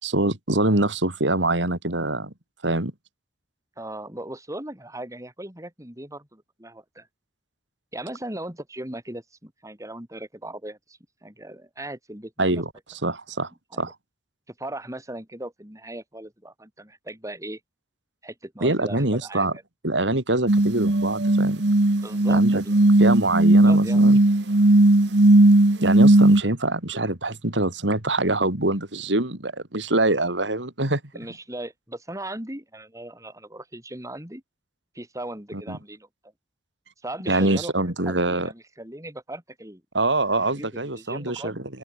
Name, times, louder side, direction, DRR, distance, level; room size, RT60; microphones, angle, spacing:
voice 1, 0.0-2.3 2.6-2.9 12.4-13.5 13.8-13.9 18.6-19.5 19.8-21.6 22.3-22.6 23.0-24.2 25.8-31.0 35.5-35.8 37.3-38.5 39.9-41.6, right 2 dB, 90° right, 4.5 m, -24 dB
voice 2, 3.8-7.1 7.9-12.6 13.7-13.9 14.5-17.6 18.2-19.6 22.0-24.0 31.1-34.4 34.9-36.1 37.0-37.7 38.1-39.8 40.5-41.7, right 1 dB, 20° right, 6.6 m, -38 dB
sound 1, 20.5-26.4, right 1 dB, 70° right, 1.3 m, -17 dB
open air
head